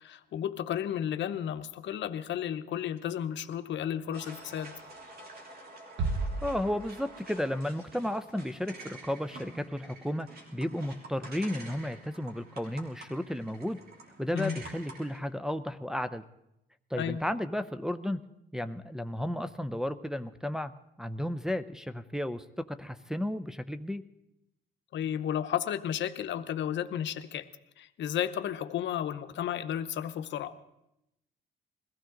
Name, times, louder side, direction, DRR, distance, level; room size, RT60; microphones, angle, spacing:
voice 1, 0.0-4.7 14.3-14.6 17.0-17.2 24.9-27.5 27.8-30.5, left 10 dB, 75° left, 10 dB, 0.8 m, -33 dB
sound 1, 4.1-15.2, right 2 dB, 55° right, 3.3 m, -49 dB
sound 2, 6.0-7.6, right 3 dB, 75° right, 1.3 m, -34 dB
voice 2, 6.4-10.3 10.5-13.8 14.2-16.2 16.9-18.2 18.5-20.7 21.0-24.0, left 1 dB, 5° right, 8 dB, 0.6 m, -33 dB
21.5 x 15.5 x 3.9 m, 0.86 s
cardioid pair, 105°, 19 cm